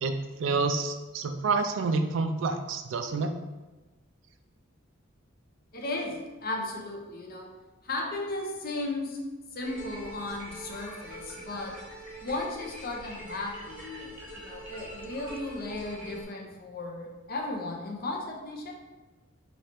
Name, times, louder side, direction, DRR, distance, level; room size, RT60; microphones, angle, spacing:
voice 1, 0.0-3.3, right 4 dB, 65° right, 7 dB, 0.3 m, -28 dB
voice 2, 5.7-7.5 7.8-11.8 12.2-18.7, left 2 dB, 45° left, 1 dB, 0.6 m, -35 dB
sound 1, 9.6-16.2, right 1 dB, 10° right, 1.1 m, -44 dB
3.1 x 2.9 x 4.3 m, 1.2 s
head